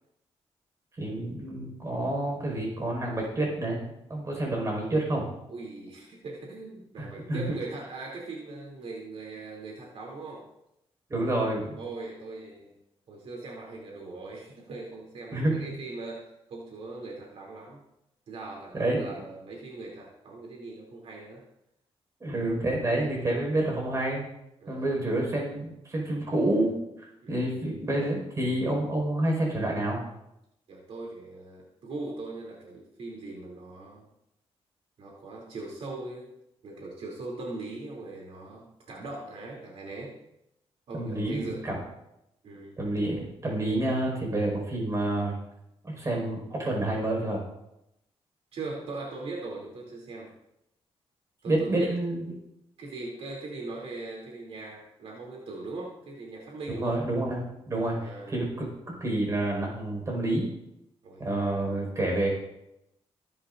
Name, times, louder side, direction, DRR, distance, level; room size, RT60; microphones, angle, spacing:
voice 1, 1.0-3.8 4.1-5.2 7.0-7.4 11.1-11.8 15.3-15.6 18.7-19.1 22.2-24.3 24.7-26.7 27.3-30.0 40.9-41.8 42.8-45.3 45.8-47.4 51.4-52.3 56.8-60.5 61.2-62.3, right 1 dB, 30° right, -1 dB, 5.1 m, -28 dB
voice 2, 5.5-10.5 11.8-12.7 13.1-17.8 18.3-21.4 24.6-24.9 27.2-27.5 30.7-34.1 35.0-36.3 36.6-40.1 40.9-41.6 42.4-42.7 48.5-50.3 51.4-52.0 52.8-57.0 57.9-58.4 61.0-61.2, right 3 dB, 65° right, -2 dB, 3.0 m, -40 dB
24.5 x 11.0 x 2.6 m, 0.84 s
wide cardioid pair, 160°, 11 cm